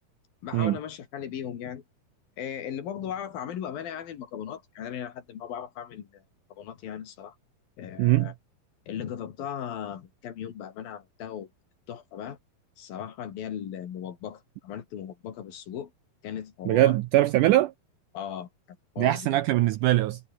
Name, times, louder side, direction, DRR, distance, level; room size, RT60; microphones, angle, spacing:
voice 1, 0.4-1.8 2.4-6.2 6.5-7.4 7.8-8.3 8.9-11.5 11.9-12.4 12.8-15.9 16.2-17.0 18.1-19.4, left 9 dB, 70° left, 4.0 m, -37 dB
voice 2, 8.0-8.3 16.7-17.7 19.0-20.2, right 16 dB, 80° right, 1.9 m, -22 dB
omnidirectional pair, 4.3 m